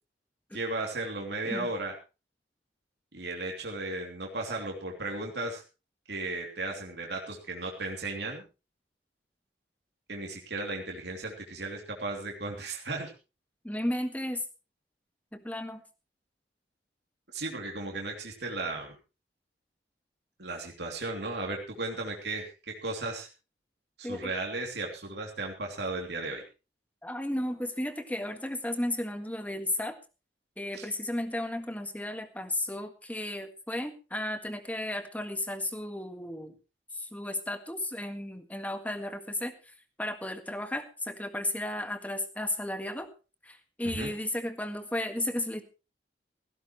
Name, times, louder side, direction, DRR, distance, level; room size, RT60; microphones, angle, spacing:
voice 1, 0.5-1.9 3.1-5.6 6.1-8.4 10.1-13.1 17.3-18.9 20.4-22.5 22.8-23.3 24.0-26.4 30.7-30.9 43.8-44.1, right 2 dB, 70° right, 1 dB, 3.1 m, -35 dB
voice 2, 13.6-14.4 15.3-15.8 24.0-24.3 27.0-30.0 30.6-36.5 36.9-39.5 40.0-43.1 43.4-45.6, left 1 dB, 10° left, 8 dB, 1.8 m, -34 dB
17.0 x 16.0 x 3.2 m, 0.31 s
head